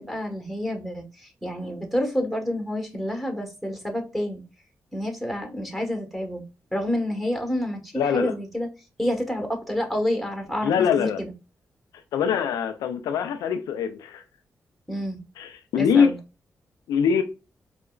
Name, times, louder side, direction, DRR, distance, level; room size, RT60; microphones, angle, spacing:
voice 1, 0.0-4.4 4.9-6.4 6.7-8.7 9.0-11.3 14.9-15.2 15.8-16.2, left 1 dB, ahead, 1.2 m, -28 dB
voice 2, 8.0-8.3 10.6-11.2 12.1-14.2 15.4-16.1 16.9-17.2, left 7 dB, 90° left, 0.3 m, -23 dB
4.5 x 2.1 x 2.3 m
supercardioid pair, 50°, 6 cm